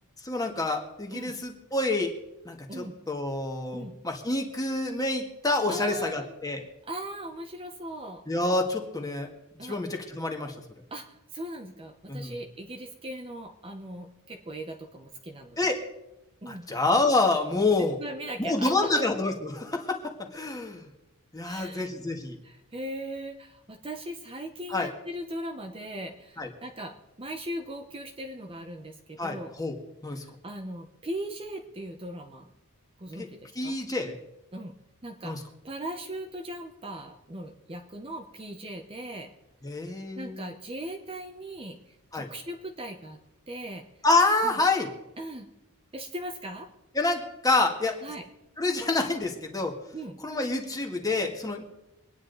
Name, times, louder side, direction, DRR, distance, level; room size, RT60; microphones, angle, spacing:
voice 1, 0.2-2.1 2.5-6.6 8.3-9.3 9.6-10.6 12.1-12.3 15.6-15.8 16.5-18.0 18.4-20.9 21.3-22.4 24.7-24.9 26.4-26.5 29.2-29.8 30.0-30.2 33.2-33.3 33.6-34.2 35.2-35.4 39.6-40.5 42.1-42.3 44.0-44.9 47.0-48.0 48.6-49.8 50.2-51.6, left 2 dB, 15° left, 3 dB, 1.8 m, -27 dB
voice 2, 5.7-6.3 6.8-8.2 9.6-9.8 10.9-15.7 16.4-16.7 18.0-19.1 21.4-21.9 22.4-29.5 30.2-32.5 33.0-33.8 34.5-34.8 35.0-35.4 35.6-39.3 40.1-41.8 42.1-43.2 43.5-43.8 44.4-44.6 45.2-45.5 45.9-46.7 48.0-48.3 49.9-50.2, right 1 dB, 25° right, 3 dB, 1.0 m, -39 dB
24.0 x 9.8 x 4.0 m, 0.93 s
head